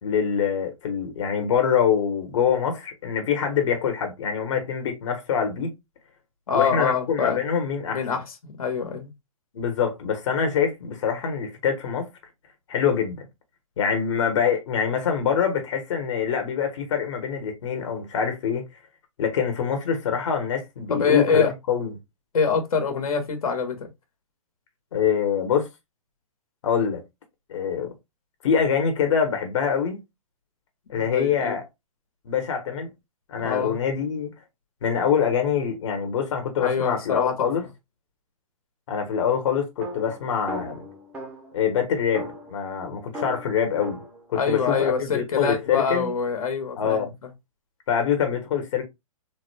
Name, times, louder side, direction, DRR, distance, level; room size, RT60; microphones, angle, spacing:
voice 1, 0.0-5.7 6.5-8.0 9.5-12.1 12.7-13.2 13.8-18.6 19.2-21.9 24.9-25.7 26.6-27.0 27.5-27.9 28.4-30.0 30.9-31.6 32.2-32.9 33.3-34.3 34.8-37.6 38.9-40.8 41.5-44.0 44.3-46.1 46.8-47.1 47.9-48.8, left 7 dB, 55° left, 1.1 m, -24 dB
voice 2, 6.5-7.4 7.9-9.1 20.9-21.5 22.3-23.9 31.0-31.6 33.4-33.8 36.6-37.5 44.4-47.1, left 6 dB, 75° left, 1.1 m, -25 dB
sound 1, 39.8-41.6 42.1-44.8, equal, 10° right, 0.5 m, -37 dB
3.5 x 2.2 x 3.2 m
hypercardioid pair, 155°, 19 cm